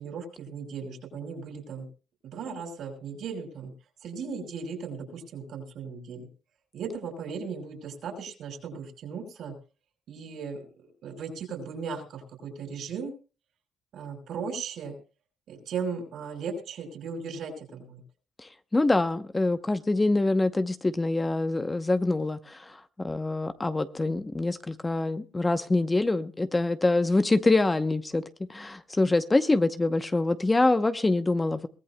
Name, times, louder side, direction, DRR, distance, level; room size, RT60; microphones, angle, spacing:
voice 1, 0.0-1.9 2.2-3.7 4.0-6.3 6.7-9.5 10.1-13.1 13.9-14.9 15.5-18.0, right 5 dB, 75° right, 3 dB, 5.0 m, -37 dB
voice 2, 18.7-22.6 23.0-28.2 28.5-31.6, left 2 dB, 20° left, 10 dB, 0.8 m, -25 dB
22.5 x 16.5 x 2.2 m, 0.35 s
cardioid pair, 90°, 0 cm